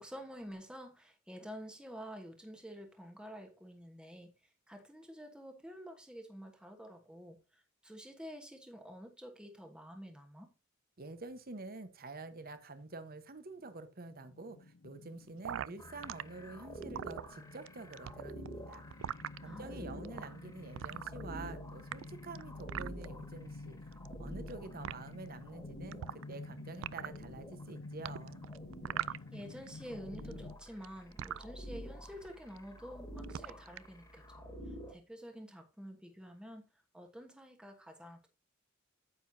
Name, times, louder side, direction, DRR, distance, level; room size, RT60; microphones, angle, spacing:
voice 1, 0.0-4.3 4.7-10.5 19.4-20.1 29.0-34.2 34.7-36.6 36.9-38.3, equal, 5° right, 1.2 m, -49 dB
voice 2, 11.0-18.8 19.4-23.8 24.2-28.5, right 3 dB, 50° right, 1.1 m, -48 dB
sound 1, 14.1-30.6, left 2 dB, 70° left, 0.7 m, -50 dB
sound 2, 15.4-16.2 16.7-17.7 17.9-19.4 20.0-20.2 20.8-21.5 21.8-23.1 23.9-24.5 24.8-24.9 25.9-26.4 26.7-27.2 28.0-29.7 29.9-31.4 32.1-32.3 32.6-32.9 33.2-33.9, right 10 dB, 70° right, 0.3 m, -40 dB
sound 3, 15.8-34.9, equal, 15° left, 1.8 m, -49 dB
9.2 x 7.9 x 2.7 m
head